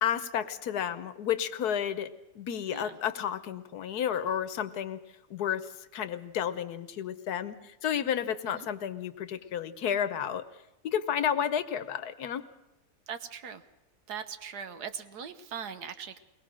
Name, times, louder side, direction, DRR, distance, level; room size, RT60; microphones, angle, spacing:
voice 1, 0.0-2.1 2.3-5.0 5.3-5.7 5.9-10.4 10.8-12.4, left 9 dB, 70° left, 13 dB, 1.4 m, -31 dB
voice 2, 13.1-13.6 14.1-16.2, right 7 dB, 70° right, 10 dB, 1.5 m, -40 dB
22.5 x 18.5 x 6.3 m, 0.95 s
omnidirectional pair, 1.8 m